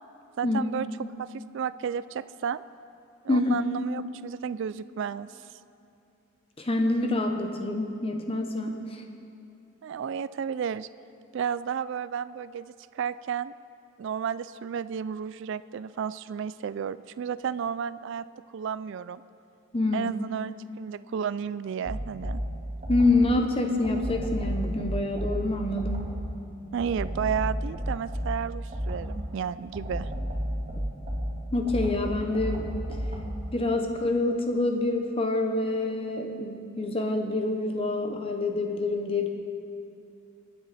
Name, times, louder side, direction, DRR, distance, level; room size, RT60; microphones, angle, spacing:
voice 1, 0.4-0.9 1.2-2.6 3.2-5.5 9.8-10.9 11.3-13.5 14.0-18.2 18.5-19.2 19.9-22.4 26.7-30.1, right 7 dB, 60° right, 15 dB, 0.3 m, -32 dB
voice 2, 6.6-9.0 19.7-20.1 22.9-26.1 31.5-32.7 33.5-39.3, left 2 dB, 25° left, 4 dB, 0.9 m, -26 dB
sound 1, 21.8-23.4 23.8-26.3 26.8-29.3 29.7-33.5, equal, 30° right, 3.3 m, -32 dB
28.5 x 9.7 x 4.2 m, 2.6 s
head